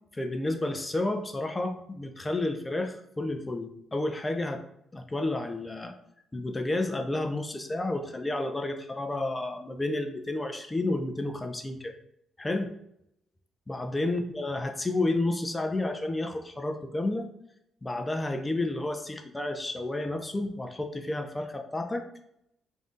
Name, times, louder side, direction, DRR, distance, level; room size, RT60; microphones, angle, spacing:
voice 1, 0.1-4.6 4.9-5.9 6.3-12.0 12.4-12.7 13.7-17.3 17.8-22.1, left 2 dB, 20° left, 6 dB, 0.4 m, -31 dB
3.5 x 2.6 x 3.7 m, 0.75 s
cardioid pair, 90°, 0 cm